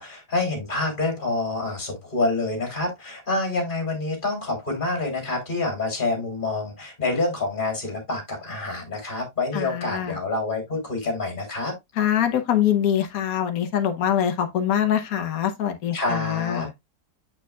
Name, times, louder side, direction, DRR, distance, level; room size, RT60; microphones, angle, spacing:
voice 1, 0.0-11.7 15.9-16.7, left 2 dB, 30° left, 3.1 m, -27 dB
voice 2, 9.5-10.2 12.0-16.7, left 10 dB, 65° left, 1.4 m, -24 dB
7.5 x 6.8 x 2.3 m
omnidirectional pair, 1.7 m